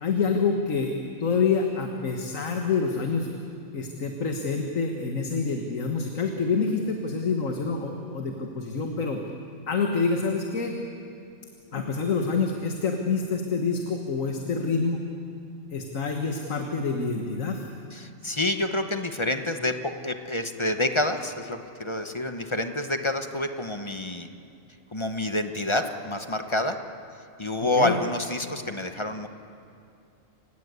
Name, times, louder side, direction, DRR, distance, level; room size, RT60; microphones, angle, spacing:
voice 1, 0.0-0.9 1.2-3.3 3.7-9.2 9.7-10.8 11.7-15.0 15.7-17.6 27.8-27.9, left 4 dB, 85° left, 3 dB, 1.9 m, -27 dB
voice 2, 17.9-24.3 24.9-26.8 27.4-29.3, left 1 dB, 25° left, 7 dB, 1.0 m, -28 dB
28.5 x 17.5 x 8.2 m, 2.5 s
omnidirectional pair, 1.3 m